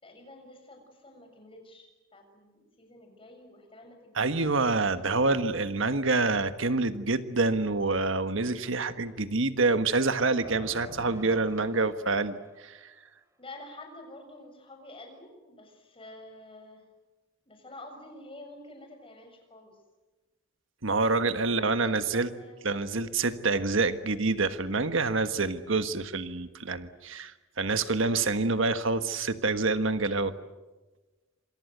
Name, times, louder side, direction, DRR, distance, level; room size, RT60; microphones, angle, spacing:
voice 1, 0.0-5.3 13.4-16.8 17.5-19.8 21.4-22.6, left 2 dB, 30° left, 4 dB, 7.0 m, -49 dB
voice 2, 4.1-12.9 20.8-22.3 22.6-30.3, right 3 dB, 70° right, 10 dB, 1.5 m, -27 dB
sound 1, 10.4-12.8, right 1 dB, 15° right, 2.9 m, -48 dB
27.0 x 27.0 x 8.0 m, 1.2 s
head